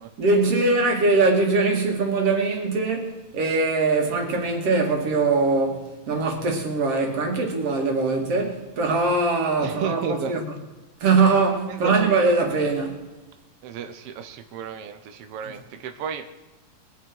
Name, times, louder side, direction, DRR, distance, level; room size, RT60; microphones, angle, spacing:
voice 1, 0.2-10.4 11.0-13.0, right 3 dB, 50° right, 3.0 m, -22 dB
voice 2, 9.6-10.4 11.7-12.0 13.6-16.3, right 7 dB, 75° right, 1.4 m, -32 dB
22.5 x 9.3 x 4.7 m
omnidirectional pair, 3.8 m